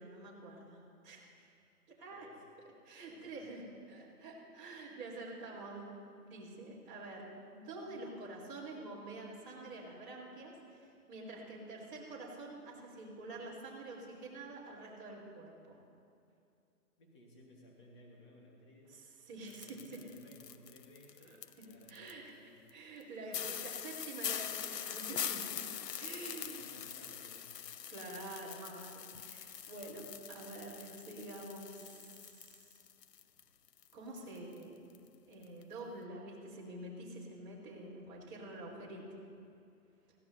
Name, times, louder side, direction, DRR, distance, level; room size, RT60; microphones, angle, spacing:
voice 1, 0.0-1.5 2.0-2.3 2.8-3.6 3.9-5.8 6.2-15.8 18.9-19.8 21.9-22.4 22.7-26.8 27.9-32.7 33.9-34.9 35.3-39.0, right 2 dB, 30° right, -8 dB, 3.5 m, -47 dB
voice 2, 2.1-2.5 3.1-3.8 17.0-19.0 19.4-22.6 23.1-23.6 26.1-27.5 38.5-39.2, left 1 dB, 20° left, -2 dB, 1.4 m, -60 dB
sound 1, 19.5-22.1 22.7-22.8 23.0-23.1 23.3-33.4 33.7-34.6 34.9-35.1 35.4-35.6, left 9 dB, 90° left, 0.8 m, -43 dB
21.5 x 16.0 x 2.8 m, 2.6 s
hypercardioid pair, 170°, 47 cm